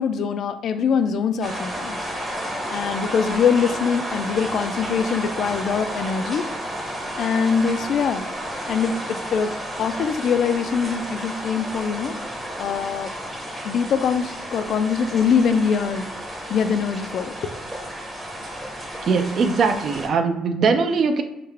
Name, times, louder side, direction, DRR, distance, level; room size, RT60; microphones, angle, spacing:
voice 1, 0.0-2.0 2.7-6.5 7.1-8.2 8.7-12.2 12.6-13.1 13.6-16.1 16.5-17.5, left 6 dB, 55° left, 9 dB, 0.3 m, -23 dB
sound 1, 1.4-20.1, equal, 20° right, 0.8 m, -32 dB
voice 2, 19.0-21.2, right 5 dB, 50° right, 8 dB, 0.4 m, -20 dB
3.5 x 2.2 x 3.3 m, 0.90 s
cardioid pair, 120°, 0 cm